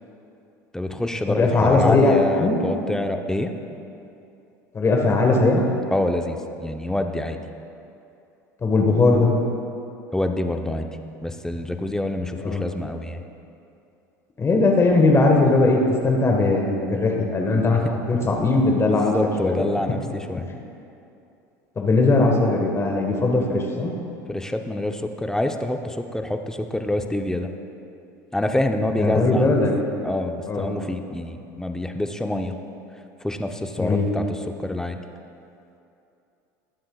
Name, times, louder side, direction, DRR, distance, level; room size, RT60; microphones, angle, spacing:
voice 1, 0.7-3.5 5.9-7.4 10.1-10.9 11.2-13.2 17.6-17.9 18.9-20.5 24.3-27.5 28.3-29.5 30.0-32.5 33.2-35.0, left 1 dB, 5° left, 5 dB, 0.7 m, -26 dB
voice 2, 1.3-2.6 4.7-5.7 8.6-9.4 12.4-12.6 14.4-17.8 18.1-19.1 19.4-19.7 21.8-23.9 29.0-29.8 30.5-30.7 33.8-34.1, left 3 dB, 30° left, 1 dB, 1.4 m, -19 dB
21.5 x 7.6 x 2.4 m, 2.7 s
hypercardioid pair, 80°, 10 cm